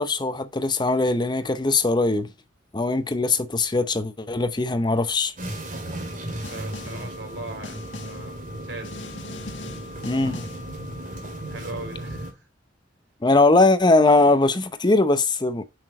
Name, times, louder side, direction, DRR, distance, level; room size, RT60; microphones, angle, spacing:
voice 1, 0.0-2.3 2.7-5.3 10.0-10.4 13.2-15.6, left 2 dB, 25° left, 0.7 m, -20 dB
sound 1, 5.4-12.3, right 1 dB, 45° right, 2.7 m, -35 dB
Snare drum, 6.4-7.1 7.6-8.3 8.8-10.7, left 3 dB, 80° left, 1.4 m, -41 dB
voice 2, 6.4-9.0 11.4-12.5, right 2 dB, 75° right, 3.9 m, -38 dB
7.3 x 6.0 x 4.3 m
head